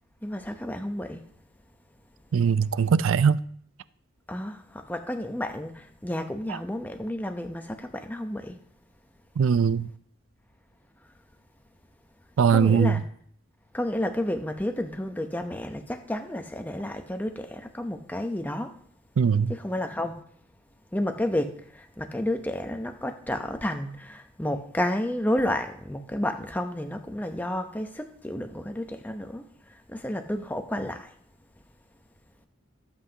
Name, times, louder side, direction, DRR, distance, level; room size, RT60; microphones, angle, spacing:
voice 1, 0.2-1.2 4.3-8.6 12.5-13.0 13.7-18.8 19.5-20.2 20.9-29.4 29.9-31.1, left 1 dB, 10° left, 0.7 m, -31 dB
voice 2, 2.3-3.4 6.5-6.6 9.4-9.9 12.4-13.0 19.2-19.5, right 6 dB, 85° right, 0.4 m, -21 dB
17.5 x 8.0 x 2.9 m
head